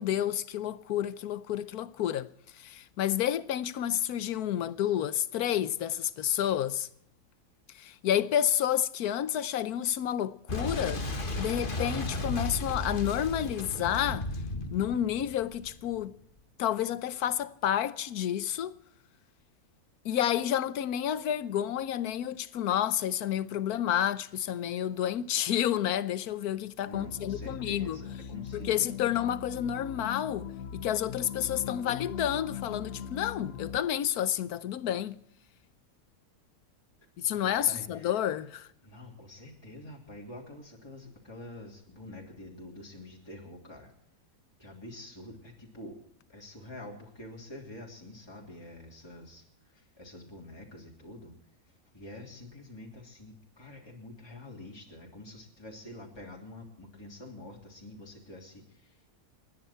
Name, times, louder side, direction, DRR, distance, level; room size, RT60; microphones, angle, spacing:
voice 1, 0.0-6.9 7.7-11.0 11.4-14.3 14.7-16.1 16.6-18.7 20.0-28.0 28.5-35.2 37.2-38.7, left 10 dB, 85° left, 1.3 m, -30 dB
Boom, 10.5-16.1, left 2 dB, 35° left, 1.7 m, -34 dB
voice 2, 26.8-28.9 37.3-38.1 38.8-43.9 44.6-46.0 46.3-49.4 49.7-51.3 51.9-59.1, left 1 dB, 15° left, 3.2 m, -47 dB
sound 1, 26.9-33.8, left 7 dB, 60° left, 1.4 m, -40 dB
29.5 x 10.0 x 4.4 m
omnidirectional pair, 1.6 m